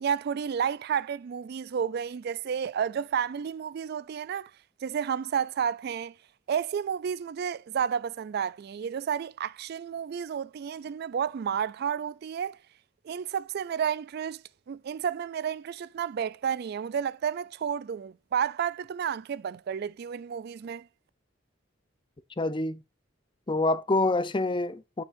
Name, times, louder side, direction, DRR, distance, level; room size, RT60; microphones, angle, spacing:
voice 1, 0.0-4.5 4.8-6.1 6.5-12.6 13.0-14.4 14.7-20.9, right 7 dB, 55° right, 0.3 m, -31 dB
voice 2, 22.4-22.8 23.5-25.0, left 2 dB, 25° left, 0.6 m, -26 dB
9.1 x 7.1 x 2.5 m
head